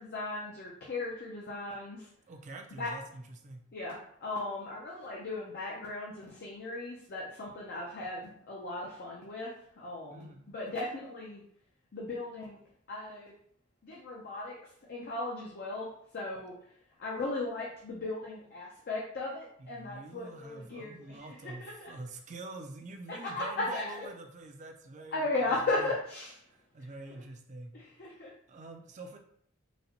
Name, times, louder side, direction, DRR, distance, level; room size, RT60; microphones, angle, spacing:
voice 1, 0.0-2.1 2.7-2.9 3.7-11.4 11.9-12.6 12.9-13.3 13.8-14.6 14.9-16.6 17.0-21.9 23.1-23.4 23.7-24.1 25.1-26.4 27.7-28.3, left 2 dB, 50° left, -3 dB, 0.5 m, -37 dB
voice 2, 2.3-3.6 10.1-10.5 19.6-25.9 26.4-27.7 28.5-29.2, right 2 dB, 35° right, 4 dB, 0.4 m, -46 dB
4.0 x 2.2 x 2.8 m, 0.66 s
head